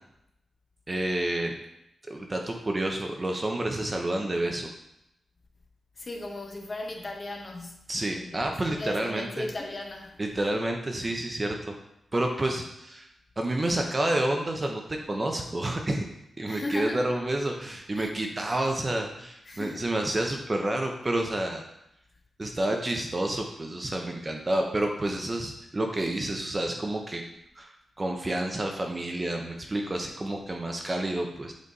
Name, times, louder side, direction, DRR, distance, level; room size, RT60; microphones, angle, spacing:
voice 1, 0.9-1.5 2.1-4.7 7.9-9.5 10.2-11.7 12.1-13.1 13.4-16.0 16.4-21.7 22.4-27.2 27.6-31.5, right 1 dB, 20° right, 2 dB, 0.7 m, -29 dB
voice 2, 6.0-10.2 16.5-17.1 17.9-18.2 19.4-19.9, left 2 dB, 25° left, 2 dB, 0.9 m, -36 dB
8.1 x 4.0 x 4.0 m, 0.82 s
wide cardioid pair, 175°, 0 cm